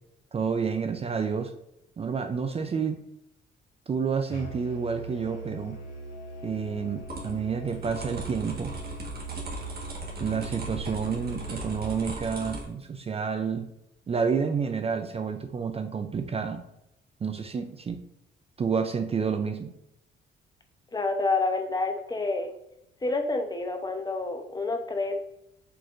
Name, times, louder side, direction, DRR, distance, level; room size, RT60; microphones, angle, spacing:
voice 1, 0.3-1.5 2.0-3.0 3.9-5.8 6.4-8.7 10.2-13.7 14.1-16.6 17.2-18.0 18.6-19.7, right 6 dB, 30° right, 7 dB, 0.4 m, -29 dB
Musical instrument, 4.3-12.1, right 3 dB, 65° left, 1.7 m, -41 dB
sound 1, 7.0-12.6, right 1 dB, 50° right, 1.4 m, -38 dB
voice 2, 20.9-22.5 23.0-25.2, left 3 dB, 20° left, 5 dB, 0.7 m, -28 dB
4.6 x 4.0 x 2.5 m, 0.82 s
cardioid pair, 90°, 20 cm